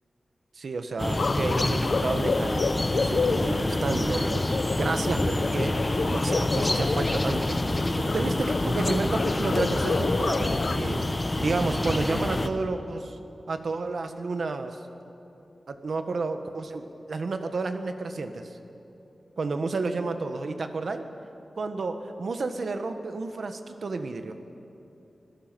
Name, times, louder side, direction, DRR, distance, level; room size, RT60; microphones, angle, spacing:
voice 1, 0.6-5.8 6.1-7.6 8.0-11.1 11.4-13.2 13.5-14.8 15.7-18.5 19.4-21.1 21.6-24.4, right 3 dB, 70° right, 7 dB, 1.4 m, -31 dB
sound 1, 1.0-12.5, left 2 dB, 25° left, 1.1 m, -27 dB
sound 2, 1.2-10.8, left 4 dB, 65° left, 0.7 m, -30 dB
24.5 x 17.0 x 7.6 m, 2.9 s
wide cardioid pair, 115°, 0 cm